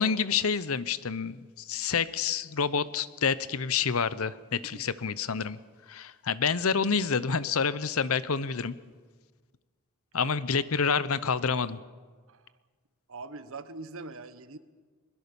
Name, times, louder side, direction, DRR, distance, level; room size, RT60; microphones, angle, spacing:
voice 1, 0.0-5.6 5.9-8.8 10.1-11.8, left 6 dB, 70° left, 16 dB, 0.8 m, -28 dB
voice 2, 4.6-5.0 5.3-5.4 10.2-10.3 12.3-12.5 13.1-14.6, right 3 dB, 65° right, 12 dB, 1.2 m, -43 dB
22.0 x 21.0 x 7.0 m, 1.5 s
head